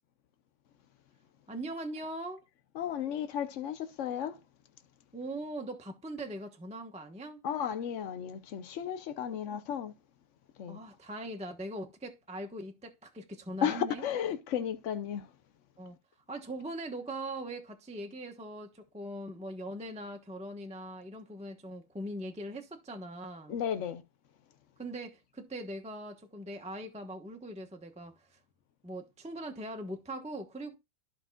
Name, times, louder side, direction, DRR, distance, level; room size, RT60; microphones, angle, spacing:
voice 1, 1.5-2.4 5.1-7.4 9.2-9.4 10.7-14.1 15.8-16.0 16.3-23.6 24.8-28.4 28.8-30.7, right 1 dB, 5° right, 0.5 m, -41 dB
voice 2, 2.8-4.4 7.4-9.9 10.6-10.8 13.6-15.2 23.5-24.0, left 9 dB, 90° left, 0.6 m, -34 dB
14.0 x 5.3 x 2.3 m
omnidirectional pair, 2.2 m